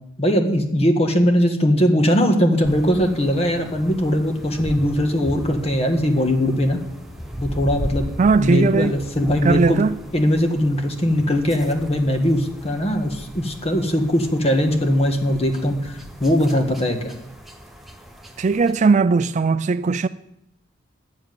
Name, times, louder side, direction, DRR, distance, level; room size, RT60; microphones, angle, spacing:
voice 1, 0.2-6.8 7.4-8.1 8.4-9.8 10.1-17.1, equal, 30° left, 1.5 m, -20 dB
sound 1, 2.6-18.7, equal, ahead, 1.1 m, -36 dB
voice 2, 8.2-9.0 9.4-9.9 18.4-20.1, right 4 dB, 40° right, 0.4 m, -18 dB
10.5 x 7.4 x 9.1 m
head